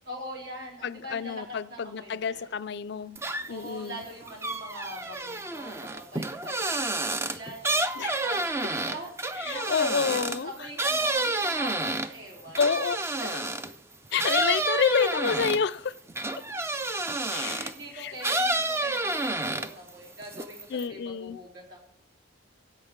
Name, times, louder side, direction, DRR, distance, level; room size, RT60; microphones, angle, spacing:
voice 1, 0.1-2.5 3.5-7.8 8.2-12.6 13.2-13.3 17.3-21.8, equal, 60° right, 3.9 m, -42 dB
voice 2, 0.8-3.2 3.5-4.0 8.0-8.2 9.4-10.7 12.6-13.0 13.3-13.4 14.1-16.0 17.3-18.1 20.7-21.4, left 6 dB, 55° left, 0.4 m, -29 dB
sound 1, 3.2-3.7 4.0-13.8 14.2-17.8 18.2-19.9 20.2-20.9, right 2 dB, 15° right, 0.4 m, -29 dB
16.0 x 7.8 x 4.5 m
head